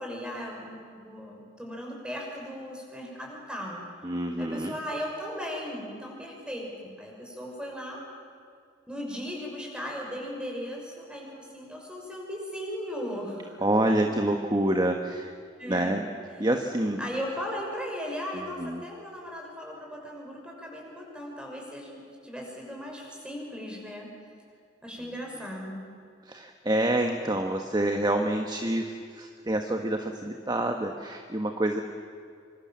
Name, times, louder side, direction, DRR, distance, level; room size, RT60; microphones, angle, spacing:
voice 1, 0.0-3.8 4.4-8.0 8.9-13.6 15.6-16.0 17.0-24.1 24.8-25.8, equal, 5° right, -1 dB, 6.3 m, -37 dB
voice 2, 4.0-4.8 13.6-15.3 15.6-16.0 16.4-17.0 18.3-18.8 25.0-25.1 26.2-31.8, right 1 dB, 25° right, 4 dB, 1.3 m, -27 dB
26.0 x 25.5 x 7.5 m, 2.3 s
head